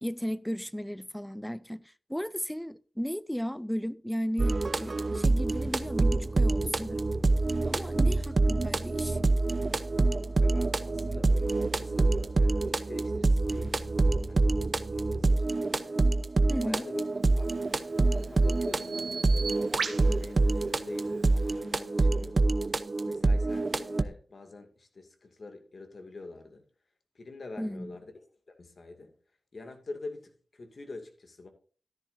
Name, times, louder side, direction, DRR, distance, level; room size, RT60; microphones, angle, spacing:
voice 1, 0.0-7.0 7.7-9.2 16.5-16.9 27.6-27.9, equal, 5° left, 0.5 m, -35 dB
sound 1, 4.4-24.0, right 2 dB, 45° right, 0.7 m, -26 dB
voice 2, 10.4-16.0 16.6-17.0 17.3-17.7 18.1-22.5 23.0-26.6 27.1-28.1 28.5-29.1 29.5-31.5, left 3 dB, 60° left, 2.3 m, -46 dB
Bird vocalization bird call bird song, 17.3-21.5, right 5 dB, 75° right, 1.1 m, -40 dB
13.0 x 10.5 x 2.7 m
cardioid pair, 55°, 0 cm